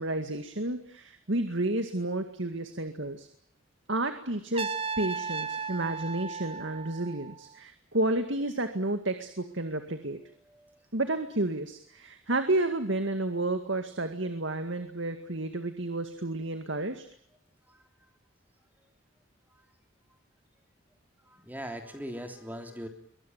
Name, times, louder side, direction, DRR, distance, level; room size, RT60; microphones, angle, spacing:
voice 1, 0.0-3.3 3.9-10.2 10.9-17.1, right 2 dB, 70° right, 8 dB, 2.1 m, -31 dB
Trumpet, 4.5-7.5, right 5 dB, 30° right, 1.1 m, -35 dB
voice 2, 10.4-10.9 17.7-17.8 19.5-19.6 21.2-22.9, equal, 10° right, 5 dB, 3.3 m, -41 dB
23.5 x 20.0 x 9.4 m, 0.68 s
head